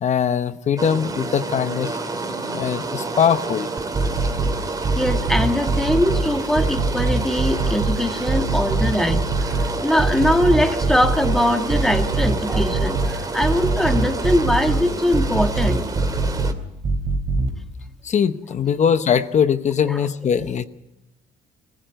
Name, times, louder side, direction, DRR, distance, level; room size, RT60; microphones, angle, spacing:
voice 1, 0.0-3.7 18.0-20.6, left 8 dB, 45° left, 11 dB, 0.9 m, -21 dB
sound 1, 0.8-16.5, right 3 dB, 20° right, 2.4 m, -29 dB
voice 2, 2.0-2.6 5.0-9.2 9.8-15.8 18.8-18.9 19.9-20.7, equal, ahead, 5 dB, 1.9 m, -22 dB
sound 2, 3.8-4.5 4.8-6.2 6.6-7.9 8.3-9.7 10.0-11.4 11.7-13.1 13.4-14.8 15.1-16.5 16.8-17.5, right 3 dB, 40° right, 3.6 m, -22 dB
21.0 x 15.5 x 8.1 m, 0.91 s
cardioid pair, 110°, 17 cm